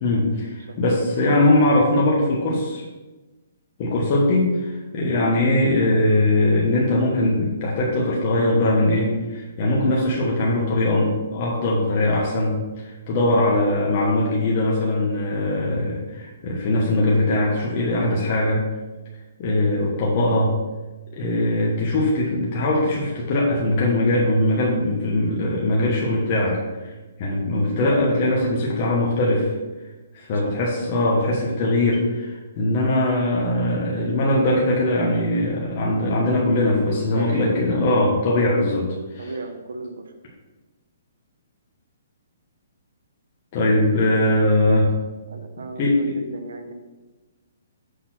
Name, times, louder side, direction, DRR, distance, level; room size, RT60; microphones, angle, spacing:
voice 1, 0.0-2.8 3.8-18.7 19.4-20.5 21.1-26.9 27.2-29.5 30.1-39.3 43.5-44.9 45.8-46.1, left 1 dB, 30° left, -4 dB, 1.3 m, -21 dB
voice 2, 37.1-37.6 38.0-38.2 39.2-40.1 45.3-46.7, right 3 dB, 90° right, 6 dB, 0.9 m, -35 dB
6.5 x 4.2 x 5.8 m, 1.2 s
hypercardioid pair, 170°, 0 cm